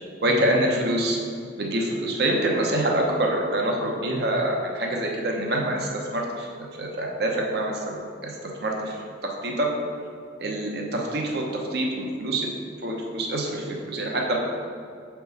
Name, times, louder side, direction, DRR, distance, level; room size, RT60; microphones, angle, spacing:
voice 1, 0.2-1.2 1.6-6.5 6.8-8.3 8.6-9.0 9.2-9.7 10.4-12.5 12.8-14.4, right 1 dB, 60° right, 0 dB, 0.8 m, -25 dB
6.8 x 4.5 x 4.0 m, 2.3 s
head